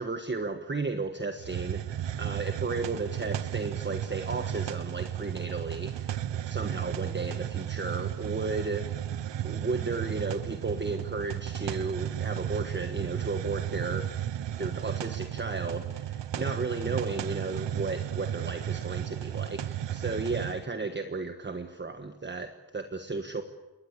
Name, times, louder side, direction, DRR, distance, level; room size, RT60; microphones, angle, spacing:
voice 1, 0.0-8.9 9.4-14.1 14.6-23.4, right 3 dB, 25° right, 7 dB, 1.4 m, -34 dB
Hiss, 1.4-20.6, right 10 dB, 75° right, 0.9 m, -34 dB
28.0 x 21.0 x 8.3 m, 1.2 s
wide cardioid pair, 140°, 44 cm